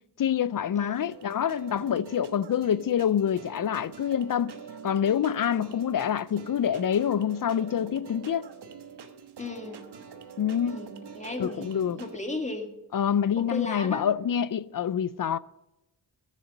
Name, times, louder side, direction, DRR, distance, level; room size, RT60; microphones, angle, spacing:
voice 1, 0.2-4.5 4.8-8.5 10.4-10.8 11.4-12.0 12.9-15.4, left 9 dB, 55° left, 0.5 m, -26 dB
sound 1, 0.9-12.2, right 6 dB, 85° right, 1.2 m, -45 dB
voice 2, 9.4-9.8 10.7-12.7 13.4-14.1, left 2 dB, 20° left, 2.1 m, -36 dB
13.0 x 7.4 x 6.5 m
cardioid pair, 60°, 39 cm